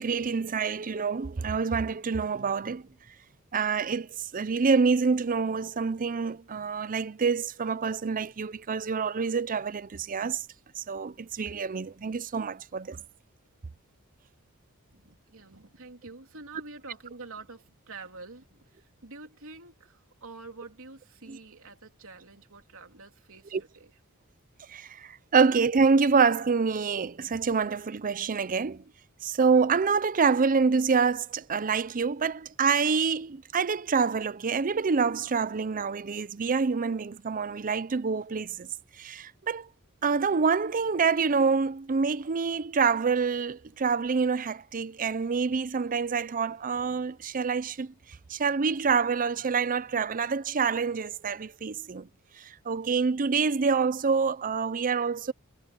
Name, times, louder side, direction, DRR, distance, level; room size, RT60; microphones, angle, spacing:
voice 1, 0.0-2.8 3.5-10.4 10.8-13.0 21.3-21.4 23.5-23.6 24.7-28.8 29.2-38.7 39.0-39.7 40.0-47.9 48.3-52.1 52.4-55.3, right 5 dB, 40° right, 0.6 m, -26 dB
voice 2, 14.9-23.9, right 3 dB, 65° right, 3.5 m, -47 dB
head